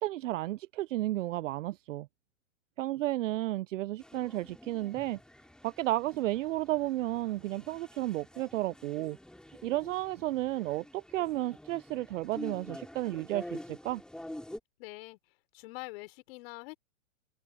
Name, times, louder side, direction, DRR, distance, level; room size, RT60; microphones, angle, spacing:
voice 1, 0.0-2.1 2.8-5.2 5.6-9.2 9.6-14.0, right 16 dB, 70° right, 0.5 m, -32 dB
sound 1, 4.0-14.6, left 1 dB, ahead, 5.9 m, -48 dB
voice 2, 14.8-15.2 15.5-16.8, left 24 dB, 45° left, 5.7 m, -44 dB
hypercardioid pair, 135°, 39 cm